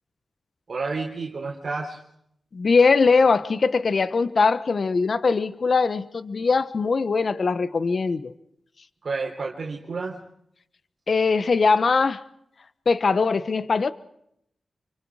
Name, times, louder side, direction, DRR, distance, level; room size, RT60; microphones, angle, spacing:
voice 1, 0.7-2.0 9.0-10.2, right 4 dB, 60° right, 3.5 m, -30 dB
voice 2, 2.5-8.3 11.1-12.2 12.9-13.9, left 4 dB, 60° left, 1.1 m, -21 dB
29.5 x 24.5 x 4.9 m
wide cardioid pair, 80°, 0 cm